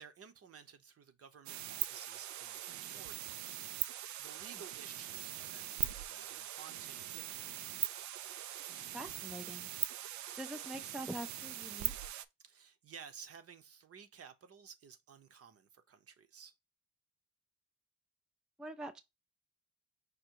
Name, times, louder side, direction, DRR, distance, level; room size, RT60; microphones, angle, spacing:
voice 1, 0.0-3.6 4.2-8.0 12.4-16.5, right 7 dB, 50° right, 0.9 m, -55 dB
sound 1, 1.5-12.3, right 12 dB, 70° right, 0.5 m, -41 dB
voice 2, 8.9-9.7 10.0-11.9 18.6-19.0, right 1 dB, ahead, 0.4 m, -45 dB
5.1 x 2.2 x 4.5 m
cardioid pair, 90°, 30 cm